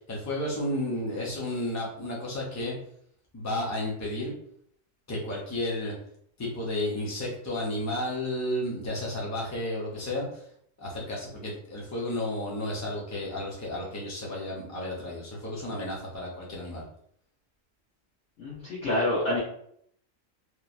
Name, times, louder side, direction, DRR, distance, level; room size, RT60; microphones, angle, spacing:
voice 1, 0.1-2.7 3.3-4.3 5.1-5.9 6.4-10.4 10.8-16.8, left 1 dB, 25° left, -3 dB, 0.4 m, -32 dB
voice 2, 18.4-19.4, left 1 dB, 70° left, -9 dB, 1.2 m, -27 dB
3.0 x 2.1 x 2.5 m, 0.68 s
omnidirectional pair, 1.3 m